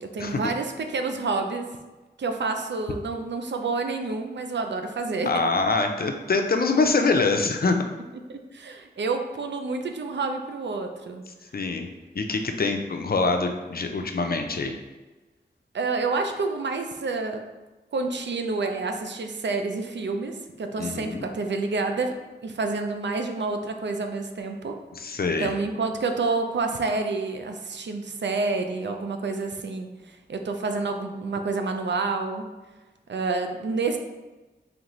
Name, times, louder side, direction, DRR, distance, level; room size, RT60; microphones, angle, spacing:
voice 1, 0.0-1.7 2.2-5.3 8.3-11.2 15.7-17.4 17.9-22.1 22.4-24.8 25.4-32.4 33.1-34.0, right 3 dB, 85° right, 5 dB, 0.4 m, -28 dB
voice 2, 5.3-7.8 11.5-11.9 12.2-14.8 20.8-21.2 25.0-25.5, left 3 dB, 60° left, 5 dB, 0.5 m, -24 dB
3.9 x 3.3 x 3.0 m, 1.2 s
wide cardioid pair, 45°, 18 cm